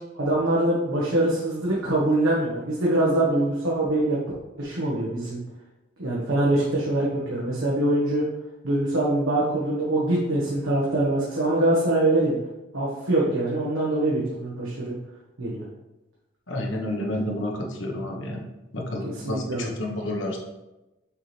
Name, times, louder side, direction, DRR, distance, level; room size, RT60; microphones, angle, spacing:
voice 1, 0.1-4.2 4.6-5.4 6.0-8.2 8.6-12.4 12.7-14.9 15.4-15.6 19.0-19.7, right 1 dB, 90° right, -6 dB, 1.4 m, -24 dB
voice 2, 16.5-18.5 18.7-20.4, left 1 dB, 70° left, 1 dB, 1.2 m, -30 dB
7.2 x 4.3 x 3.4 m, 1.0 s
head